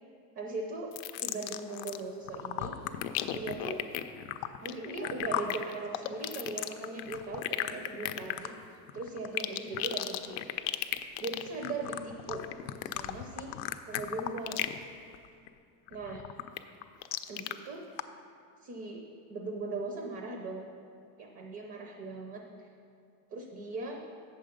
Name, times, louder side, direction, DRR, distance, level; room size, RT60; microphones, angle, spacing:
voice 1, 0.3-0.9 1.2-2.7 3.3-3.8 4.6-8.5 8.9-10.4 11.2-12.4 12.9-13.5 13.9-14.7 15.9-16.2 17.3-17.8 18.6-19.0 19.3-20.7 21.2-22.4 23.3-24.0, right 3 dB, 35° right, 2 dB, 0.6 m, -39 dB
sound 1, 0.9-2.0 2.3-14.8 15.1-15.5 15.9-17.5 18.0-18.1, left 13 dB, 80° left, 0.6 m, -35 dB
8.2 x 6.9 x 5.2 m, 2.5 s
cardioid pair, 175°, 41 cm